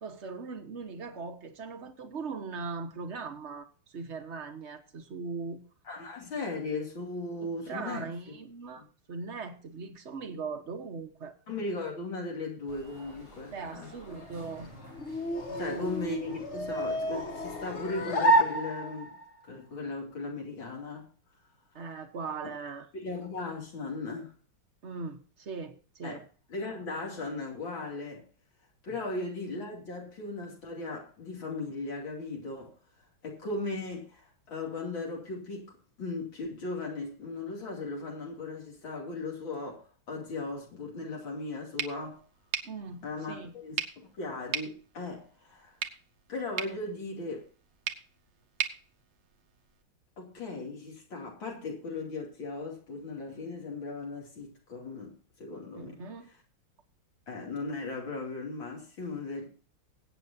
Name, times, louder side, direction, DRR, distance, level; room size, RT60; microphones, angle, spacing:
voice 1, 0.0-5.6 7.4-11.4 13.5-14.7 15.5-15.9 21.7-22.9 24.8-26.3 28.9-29.0 42.6-43.5 55.8-56.3, right 4 dB, 40° right, 1.2 m, -40 dB
voice 2, 5.9-8.1 8.8-8.9 11.5-13.9 15.6-19.2 19.5-21.1 22.9-24.3 26.0-26.2 26.5-28.3 28.8-32.7 33.2-35.7 36.0-42.2 43.0-45.8 46.3-47.5 50.2-56.0 57.3-59.5, left 3 dB, 70° left, 3.4 m, -37 dB
sound 1, 12.7-17.9, left 1 dB, 85° left, 5.1 m, -51 dB
sound 2, 14.3-19.3, right 1 dB, 40° left, 1.5 m, -30 dB
sound 3, 41.8-49.8, right 9 dB, 70° right, 1.6 m, -40 dB
20.0 x 8.6 x 2.7 m
omnidirectional pair, 2.2 m